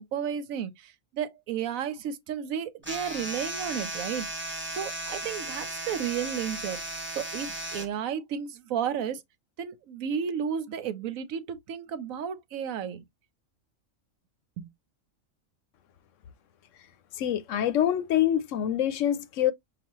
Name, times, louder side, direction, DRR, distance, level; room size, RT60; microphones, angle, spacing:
voice 1, 0.0-4.4 4.8-9.2 9.6-13.0 14.6-14.7, right 8 dB, 80° right, 1.1 m, -33 dB
sound 1, 2.8-7.9, right 1 dB, 10° right, 1.2 m, -36 dB
voice 2, 17.1-19.5, left 11 dB, 70° left, 0.9 m, -25 dB
5.9 x 2.3 x 3.0 m
omnidirectional pair, 1.4 m